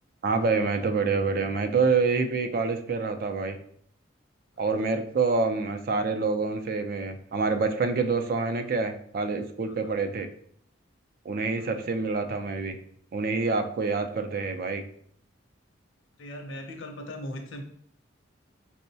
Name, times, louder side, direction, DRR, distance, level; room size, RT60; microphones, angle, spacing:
voice 1, 0.2-3.6 4.6-10.3 11.2-12.8 13.1-14.8, right 4 dB, 50° right, 7 dB, 0.3 m, -27 dB
voice 2, 16.2-17.6, left 1 dB, 75° left, 4 dB, 0.6 m, -38 dB
4.4 x 2.0 x 2.6 m, 0.64 s
head